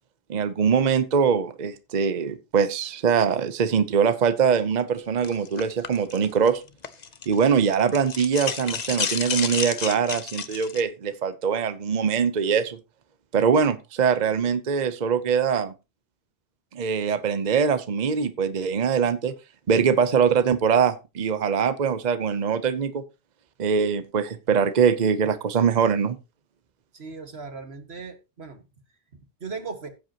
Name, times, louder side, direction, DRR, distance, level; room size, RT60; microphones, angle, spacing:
voice 1, 0.3-6.6 7.3-12.8 13.3-15.7 16.7-19.3 19.7-23.0 23.6-26.2, right 6 dB, 50° right, 12 dB, 0.8 m, -22 dB
sound 1, 5.2-7.4 7.7-10.8, left 6 dB, 45° left, 0.8 m, -31 dB
voice 2, 26.9-28.6 29.4-29.9, right 4 dB, 85° right, 7 dB, 2.0 m, -37 dB
15.5 x 7.9 x 2.9 m, 0.27 s
omnidirectional pair, 1.0 m